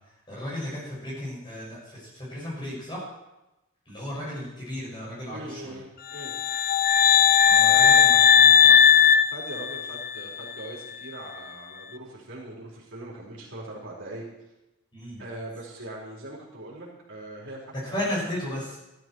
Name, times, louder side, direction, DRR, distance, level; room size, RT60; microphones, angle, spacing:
voice 1, 0.3-3.0 3.9-5.8 7.5-8.8 14.9-15.2 17.9-18.8, left 1 dB, 20° left, -6 dB, 6.6 m, -34 dB
voice 2, 5.3-6.3 7.6-8.0 9.2-14.3 15.2-18.1, right 1 dB, 60° right, -4 dB, 4.0 m, -41 dB
sound 1, 6.2-10.2, left 8 dB, 40° left, 0.5 m, -17 dB
14.0 x 13.0 x 4.7 m, 0.98 s
head